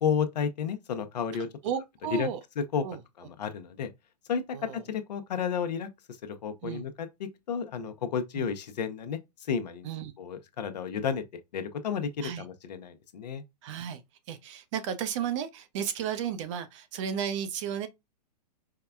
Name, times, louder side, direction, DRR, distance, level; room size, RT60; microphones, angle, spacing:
voice 1, 0.0-1.5 2.1-2.3 2.6-2.8 3.2-3.9 4.3-4.4 4.8-5.9 6.2-9.9 10.2-11.2 11.5-13.4, left 7 dB, 75° left, 0.8 m, -32 dB
voice 2, 1.6-2.4 2.8-3.0 4.5-4.8 6.6-6.9 8.3-8.5 9.8-10.1 12.2-12.4 13.6-14.0 14.3-17.9, right 8 dB, 45° right, 0.7 m, -33 dB
4.6 x 2.2 x 2.3 m
hypercardioid pair, 135°, 21 cm